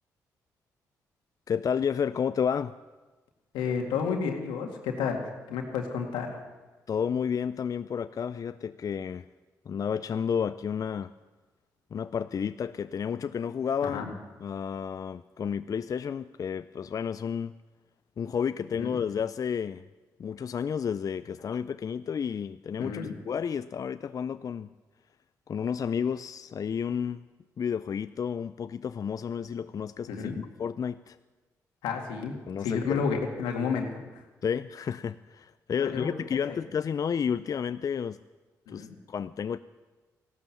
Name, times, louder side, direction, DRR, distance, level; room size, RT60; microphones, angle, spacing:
voice 1, 1.5-2.7 6.9-9.2 9.7-11.1 11.9-14.1 14.4-17.5 18.2-19.8 20.2-24.7 25.5-27.2 27.6-31.2 32.5-33.0 34.4-38.2 38.7-39.6, left 7 dB, 50° left, 13 dB, 0.4 m, -31 dB
voice 2, 3.5-6.4 13.8-14.1 18.8-18.9 22.8-23.2 30.1-30.4 31.8-32.3 32.6-34.2 35.8-36.6 38.7-39.0, left 6 dB, 85° left, 3 dB, 2.0 m, -31 dB
14.5 x 12.5 x 7.2 m, 1.2 s
supercardioid pair, 55°, 8 cm